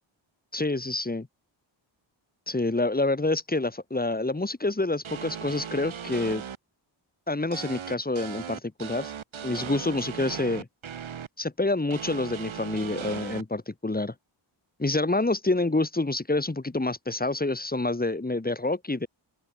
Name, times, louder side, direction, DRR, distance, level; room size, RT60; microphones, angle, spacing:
voice 1, 0.5-1.3 2.5-6.4 7.3-9.1 9.4-10.7 11.4-14.1 14.8-19.1, left 2 dB, 20° left, 3.4 m, -27 dB
sound 1, 5.0-6.6 7.5-11.3 11.9-13.4, right 8 dB, 80° right, 4.2 m, -37 dB
open air
wide cardioid pair, 100°, 47 cm